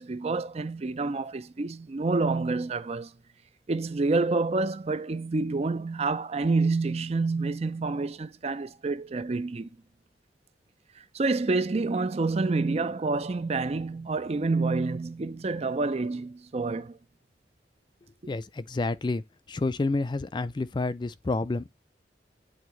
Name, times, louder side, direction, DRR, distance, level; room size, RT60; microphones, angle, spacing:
voice 1, 0.0-3.1 3.7-9.7 11.1-17.0, right 3 dB, 35° right, 0.5 m, -28 dB
voice 2, 18.3-19.2 19.5-21.7, left 3 dB, 25° left, 0.4 m, -29 dB
8.8 x 3.6 x 3.0 m
head